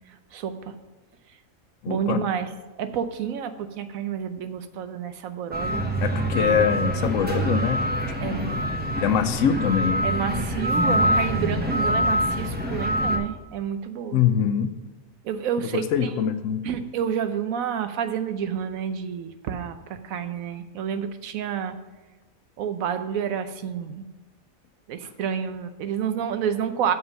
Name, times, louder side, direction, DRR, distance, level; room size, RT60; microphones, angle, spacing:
voice 1, 0.3-0.7 1.9-2.5 2.8-5.9 8.2-8.5 10.0-14.2 15.2-16.3 16.6-21.7 22.6-24.0 24.9-26.9, right 8 dB, 80° right, 10 dB, 1.1 m, -29 dB
voice 2, 1.8-2.2 6.0-7.8 8.2-8.6 8.9-10.1 14.1-14.7 15.7-16.6, left 8 dB, 75° left, 10 dB, 1.0 m, -24 dB
sound 1, 5.5-13.2, equal, 10° right, 0.8 m, -25 dB
7.1 x 5.5 x 6.4 m, 1.3 s
omnidirectional pair, 1.4 m